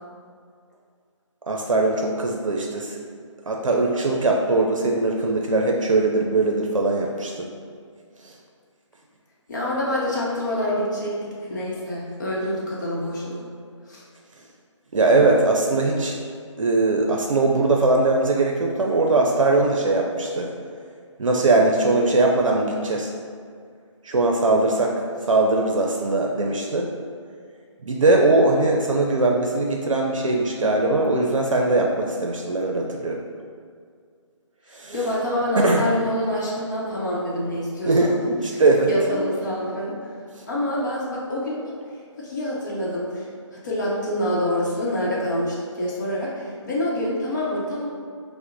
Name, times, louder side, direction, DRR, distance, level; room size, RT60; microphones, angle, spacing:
voice 1, 1.5-3.0 3.5-7.3 14.9-16.2 16.6-20.5 21.2-23.1 24.0-24.9 25.3-26.9 27.9-33.2 34.7-35.0 35.6-35.8 37.9-38.9, right 2 dB, 80° right, 1 dB, 0.6 m, -20 dB
voice 2, 9.5-13.5 13.9-14.0 34.9-38.1 38.5-40.2 40.5-41.6 42.2-43.3 43.6-47.9, left 1 dB, 35° left, -5 dB, 0.8 m, -26 dB
5.6 x 2.1 x 3.9 m, 2.2 s
figure-of-eight pair, 160°, 16 cm